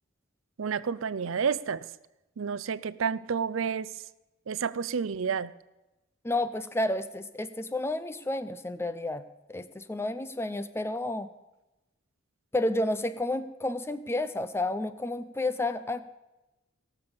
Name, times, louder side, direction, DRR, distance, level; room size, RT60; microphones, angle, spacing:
voice 1, 0.6-1.9 2.4-3.9 4.5-5.5, right 6 dB, 80° right, 18 dB, 0.5 m, -30 dB
voice 2, 6.2-9.2 9.5-11.3 12.5-16.1, left 2 dB, 10° left, 12 dB, 0.5 m, -31 dB
17.5 x 7.1 x 7.1 m, 1.0 s
head